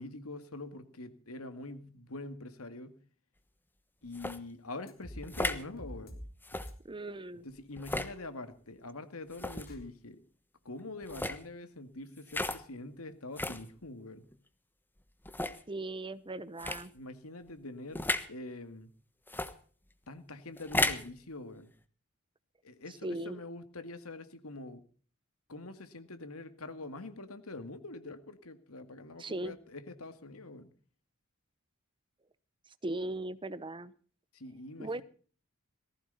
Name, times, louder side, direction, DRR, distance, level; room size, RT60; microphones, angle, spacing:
voice 1, 0.0-3.0 4.0-6.2 7.4-10.2 10.6-14.3 16.9-18.9 20.1-21.7 22.6-24.8 25.5-30.7 34.3-35.0, left 2 dB, 85° left, 10 dB, 2.1 m, -45 dB
sound 1, 4.1-4.4 5.2-5.6 6.4-6.7 7.8-8.1 9.3-9.7 11.0-11.4 12.3-12.6 13.4-13.6 14.3-14.4 15.2-15.6 16.6-16.8 18.0-18.3 19.3-19.5 20.6-21.1, left 2 dB, 10° left, 1.2 m, -33 dB
sound 2, 4.9-5.5 5.8-6.2 6.5-6.7 9.7-9.8, equal, 45° left, 3.8 m, -44 dB
voice 2, 6.8-7.5 15.7-16.9 23.0-23.4 29.2-29.6 32.8-33.9 34.8-35.0, right 2 dB, 25° right, 16 dB, 0.8 m, -38 dB
19.0 x 15.5 x 4.1 m, 0.43 s
head